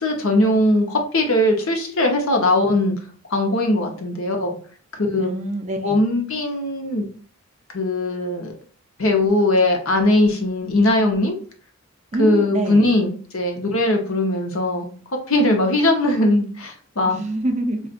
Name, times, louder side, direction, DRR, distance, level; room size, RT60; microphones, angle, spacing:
voice 1, 0.0-3.0 3.3-4.5 5.1-5.3 5.8-7.1 7.7-8.5 9.0-11.4 12.2-14.9 15.3-17.2, left 1 dB, 65° left, 0.9 m, -20 dB
voice 2, 5.2-6.1 12.1-12.9 17.0-17.9, right 1 dB, 30° right, 0.4 m, -26 dB
5.2 x 2.4 x 2.5 m
head